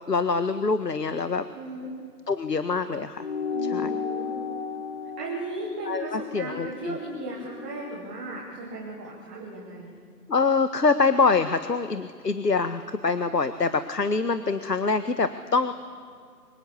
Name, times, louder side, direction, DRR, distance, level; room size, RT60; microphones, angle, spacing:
voice 1, 0.1-1.4 2.3-3.3 3.7-3.9 5.9-7.0 10.3-15.7, left 4 dB, 75° left, 10 dB, 1.6 m, -25 dB
voice 2, 1.5-1.9 3.5-4.5 5.2-9.9, right 2 dB, 5° right, -4 dB, 1.1 m, -36 dB
sound 1, 3.2-8.0, left 6 dB, 40° left, 1.0 m, -34 dB
26.5 x 25.0 x 8.3 m, 2.1 s
figure-of-eight pair, 155°, 49 cm